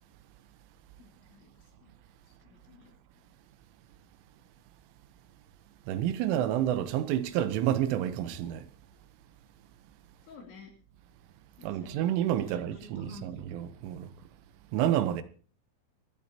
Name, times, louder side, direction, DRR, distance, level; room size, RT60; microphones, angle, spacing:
voice 1, 1.0-1.5 1.8-1.9 2.4-2.9 10.3-10.7 11.6-12.0 12.4-13.5, left 4 dB, 70° left, 5.4 m, -51 dB
voice 2, 5.9-8.7 11.6-14.1 14.7-15.2, right 11 dB, 85° right, 3.5 m, -29 dB
21.5 x 12.0 x 2.9 m
omnidirectional pair, 5.5 m